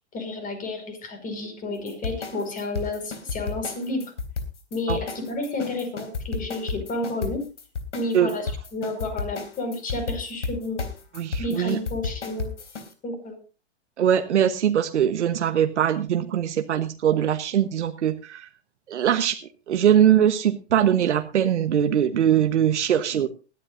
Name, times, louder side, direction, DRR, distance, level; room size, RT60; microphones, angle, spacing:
voice 1, 0.1-4.1 4.7-7.4 7.9-10.8 11.4-12.5 13.0-13.4, left 2 dB, 25° left, 7 dB, 5.3 m, -31 dB
sound 1, 1.9-12.9, left 4 dB, 85° left, 3.7 m, -32 dB
voice 2, 11.2-11.8 14.0-18.5 18.9-19.4 19.7-23.3, right 9 dB, 80° right, 8 dB, 1.2 m, -21 dB
20.0 x 13.0 x 2.6 m, 0.34 s
hypercardioid pair, 125°, 34 cm